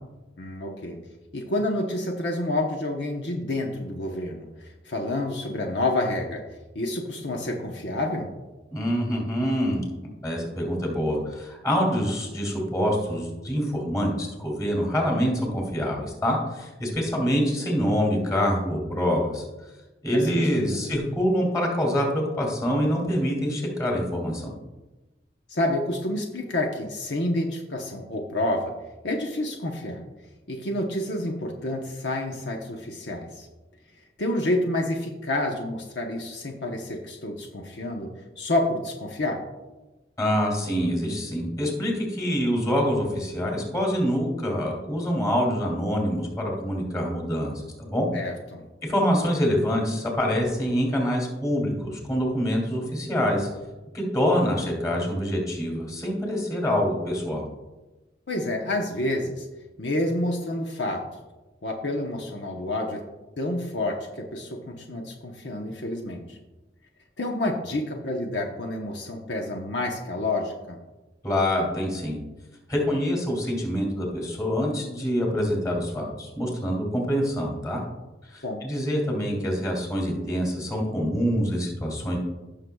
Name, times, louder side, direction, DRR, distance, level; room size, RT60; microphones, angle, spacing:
voice 1, 0.4-1.0 1.3-6.4 6.7-8.3 20.1-20.8 25.5-28.7 29.0-30.0 30.5-33.5 34.2-38.1 38.4-39.4 48.1-48.6 58.3-59.5 59.8-61.0 61.6-63.0 63.4-66.4 67.2-70.8 78.4-78.6, left 1 dB, 75° left, 1 dB, 0.9 m, -29 dB
voice 2, 8.7-19.4 20.0-24.5 40.2-47.5 47.8-48.1 48.8-53.5 53.9-57.4 71.2-72.2 72.7-77.8 78.3-82.2, equal, 20° left, -1 dB, 2.7 m, -25 dB
16.0 x 6.7 x 2.3 m, 1.1 s
head